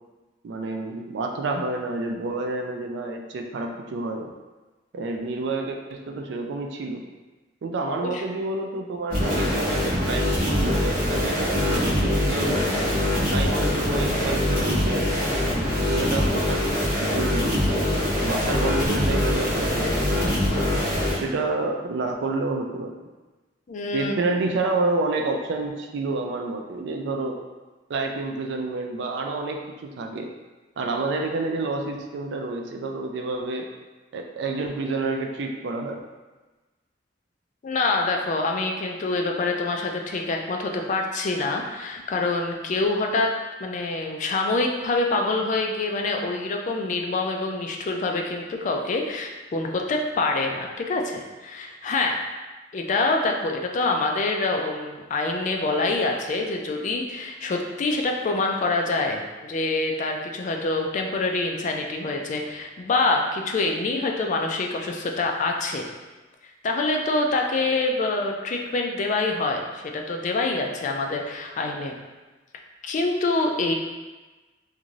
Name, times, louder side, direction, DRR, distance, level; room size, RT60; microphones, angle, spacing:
voice 1, 0.4-4.3 4.9-7.0 7.6-15.1 15.9-16.6 17.0-17.6 18.2-20.4 21.1-22.9 23.9-27.4 27.9-30.3 30.8-33.7 34.1-36.1, right 3 dB, 65° right, 3 dB, 0.3 m, -29 dB
sound 1, 9.1-21.2, left 1 dB, 50° right, 1.0 m, -23 dB
voice 2, 23.7-24.3 37.6-43.3 43.6-52.2 52.7-65.9 66.6-71.9 72.8-73.7, left 3 dB, 40° left, 2 dB, 0.3 m, -26 dB
2.5 x 2.4 x 3.0 m, 1.2 s
head